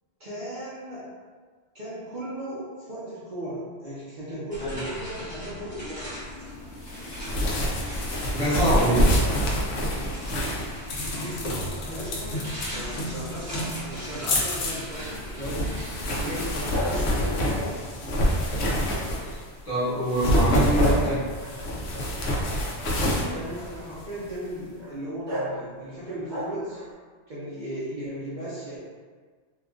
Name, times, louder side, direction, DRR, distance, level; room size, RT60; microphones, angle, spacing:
voice 1, 0.2-1.1 1.7-6.2 11.1-15.7 16.2-17.8 23.3-26.8 27.3-28.8, right 1 dB, 50° right, -10 dB, 0.7 m, -36 dB
sound 1, 4.5-18.1, left 1 dB, 10° right, 0.7 m, -40 dB
sound 2, 6.8-19.5 20.0-24.3, equal, 75° left, 0.8 m, -27 dB
voice 2, 8.3-9.3 19.6-21.2, equal, 35° left, -12 dB, 1.2 m, -24 dB
sound 3, 16.7-19.3 19.7-20.1 20.7-23.0 23.4-23.9 24.8-24.9 25.2-25.6 26.0-26.9, equal, 85° right, 1.0 m, -35 dB
2.7 x 2.3 x 2.4 m, 1.5 s
omnidirectional pair, 1.1 m